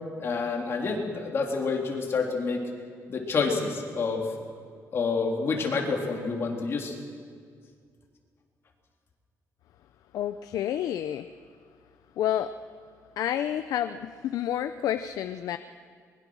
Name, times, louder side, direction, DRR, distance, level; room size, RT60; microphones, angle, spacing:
voice 1, 0.2-2.6 3.1-4.2 4.9-7.0, left 4 dB, 45° left, 1 dB, 3.3 m, -28 dB
voice 2, 10.1-11.3 12.2-12.5 13.2-15.6, left 11 dB, 80° left, 10 dB, 0.6 m, -29 dB
23.5 x 21.5 x 6.4 m, 2.1 s
cardioid pair, 150°, 6 cm